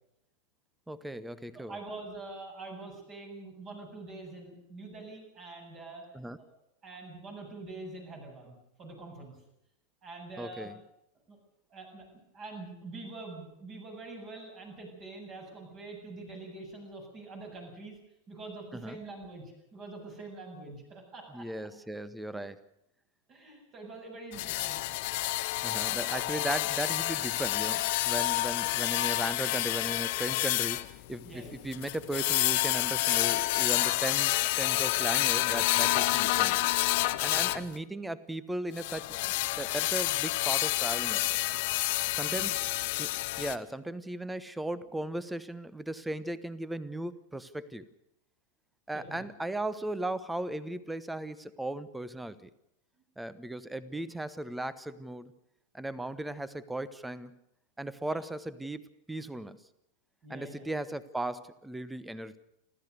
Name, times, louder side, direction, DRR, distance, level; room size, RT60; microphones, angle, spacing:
voice 1, 0.9-1.8 6.1-6.4 10.4-10.8 18.7-19.0 21.3-22.6 25.6-36.6 37.2-41.4 42.1-42.6 43.0-43.1 43.4-47.8 48.9-52.5 53.2-55.3 55.7-57.4 57.8-59.6 60.3-62.4, right 1 dB, 5° right, 17 dB, 1.0 m, -37 dB
voice 2, 1.5-6.0 6.8-9.3 10.0-10.7 11.3-11.4 11.7-12.0 12.3-18.0 18.3-19.4 19.7-21.4 23.3-24.8 28.6-28.9 31.2-31.6 37.1-37.7 42.3-42.6 48.9-49.3 58.0-58.2 60.2-60.6, right 2 dB, 30° right, 2 dB, 8.0 m, -45 dB
sound 1, 24.3-37.7 38.8-43.6, left 18 dB, 50° left, 0.8 m, -29 dB
29.5 x 13.5 x 6.7 m, 0.82 s
figure-of-eight pair, 90°, 0 cm